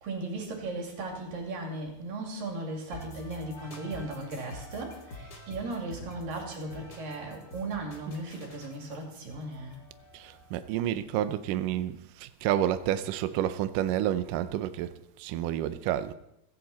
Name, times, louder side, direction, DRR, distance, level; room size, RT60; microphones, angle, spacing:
voice 1, 0.0-5.0 5.5-9.8, right 2 dB, 60° right, 4.2 m, -36 dB
sound 1, 2.9-10.7, left 1 dB, 35° left, 1.8 m, -47 dB
voice 2, 10.1-14.9 15.2-16.1, right 11 dB, 85° right, 1.9 m, -30 dB
16.5 x 16.0 x 4.2 m
omnidirectional pair, 4.7 m